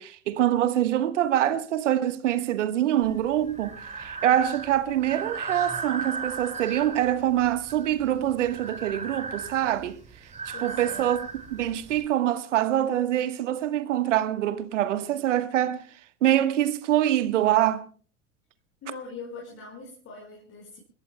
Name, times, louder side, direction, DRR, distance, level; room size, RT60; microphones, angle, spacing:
voice 1, 0.0-10.0 10.6-11.2 11.5-15.8 16.2-17.8, right 12 dB, 65° right, 1.4 m, -25 dB
Breathing, 3.0-12.0, right 4 dB, 15° right, 5.2 m, -37 dB
voice 2, 10.5-11.1 18.8-20.8, left 3 dB, 35° left, 4.7 m, -42 dB
29.5 x 14.5 x 2.2 m
figure-of-eight pair, 80°, 40 cm